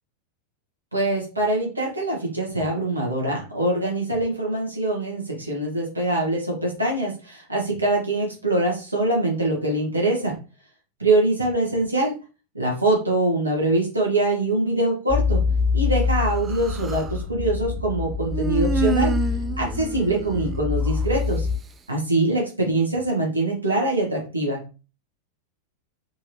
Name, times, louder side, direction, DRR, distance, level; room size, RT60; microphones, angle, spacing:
voice 1, 0.9-10.3 11.0-12.1 12.5-15.4 15.7-19.1 19.6-21.5 21.9-24.6, right 2 dB, 80° right, -2 dB, 1.7 m, -23 dB
sound 1, 15.1-21.6, left 5 dB, 40° right, 2.3 m, -25 dB
Human voice, 16.2-17.2 18.3-21.1, right 5 dB, 20° right, 0.4 m, -29 dB
4.5 x 3.4 x 2.9 m, 0.33 s
figure-of-eight pair, 90°, 0 cm